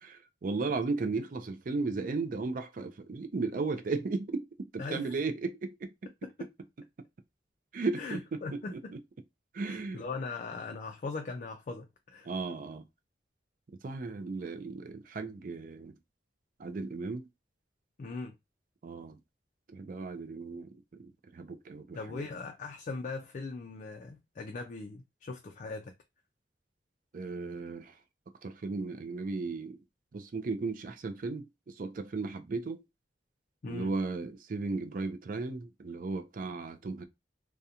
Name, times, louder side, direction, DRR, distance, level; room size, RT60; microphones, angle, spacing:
voice 1, 0.0-4.5 4.7-5.9 7.7-9.0 9.5-10.0 12.2-12.8 13.8-16.0 16.6-17.2 18.8-19.2 19.7-22.3 27.1-28.0 28.4-29.8 30.1-32.8 33.7-37.0, right 3 dB, 50° right, 0.4 m, -35 dB
voice 2, 4.8-5.1 6.2-6.5 8.0-8.7 9.6-12.3 18.0-18.3 21.9-25.9 33.6-33.9, left 3 dB, 45° left, 0.3 m, -40 dB
2.4 x 2.1 x 2.8 m
head